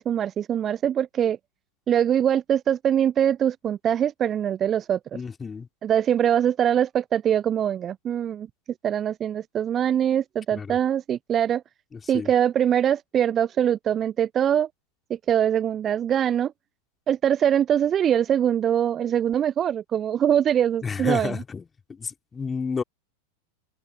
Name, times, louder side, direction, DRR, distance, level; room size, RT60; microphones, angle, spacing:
voice 1, 0.0-1.4 1.9-5.2 5.8-8.5 8.8-11.6 12.1-14.7 15.1-16.5 17.1-21.4, right 9 dB, 25° right, 0.6 m, -23 dB
voice 2, 5.1-5.7 10.5-10.8 12.1-12.3 20.8-21.6 21.9-22.8, left 5 dB, 15° left, 3.1 m, -30 dB
figure-of-eight pair, 90°, 0 cm